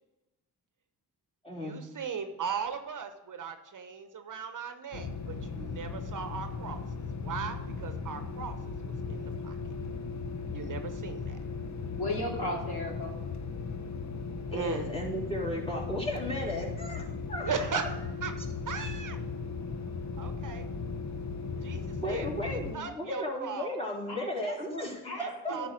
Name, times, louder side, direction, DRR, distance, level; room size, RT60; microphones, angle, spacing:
voice 1, 1.5-6.8 7.2-9.6 10.5-11.4 14.5-14.9 17.4-17.9 18.2-18.3 18.7-19.2 20.2-20.7 21.6-23.8 25.2-25.7, right 6 dB, 50° right, 8 dB, 1.0 m, -38 dB
sound 1, 4.9-22.8, left 4 dB, 45° left, 1.0 m, -37 dB
voice 2, 12.0-13.1 24.1-25.7, left 1 dB, 65° left, -1 dB, 2.7 m, -36 dB
voice 3, 14.5-17.9 22.0-25.5, left 1 dB, 15° left, -3 dB, 3.3 m, -35 dB
10.0 x 4.6 x 6.5 m, 1.0 s
supercardioid pair, 55°, 41 cm